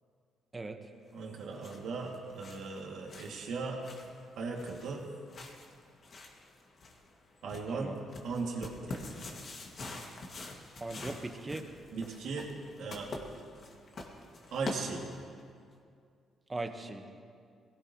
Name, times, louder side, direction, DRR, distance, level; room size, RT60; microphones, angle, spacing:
voice 1, 1.1-3.8 4.4-5.0 7.4-7.9 8.2-9.1 11.9-12.5 12.8-13.1 14.5-15.1, right 4 dB, 75° right, -1 dB, 2.5 m, -37 dB
sound 1, 1.2-15.4, left 2 dB, 50° left, 2.1 m, -46 dB
voice 2, 10.8-11.6 16.5-17.2, right 2 dB, 20° right, 5 dB, 1.3 m, -39 dB
21.5 x 17.5 x 3.1 m, 2.3 s
cardioid pair, 90°, 0 cm